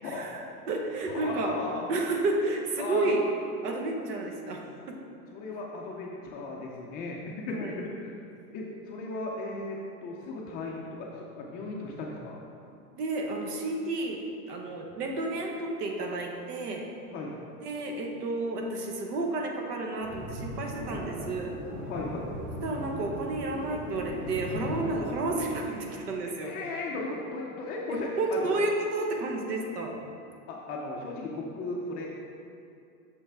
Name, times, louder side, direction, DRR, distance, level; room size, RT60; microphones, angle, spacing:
voice 1, 0.0-1.6 1.9-3.3 3.6-5.0 7.5-7.7 13.0-14.2 14.5-16.8 17.6-21.5 22.6-26.6 27.9-30.0, right 2 dB, 90° right, 1 dB, 1.2 m, -31 dB
voice 2, 1.1-1.8 2.8-3.1 5.3-8.1 8.5-12.4 17.1-17.4 21.9-22.4 26.4-28.4 30.5-32.2, left 2 dB, 20° left, -2 dB, 0.3 m, -36 dB
sound 1, 20.0-25.6, equal, 35° right, 1.4 m, -38 dB
6.7 x 5.5 x 3.4 m, 2.5 s
supercardioid pair, 140°, 46 cm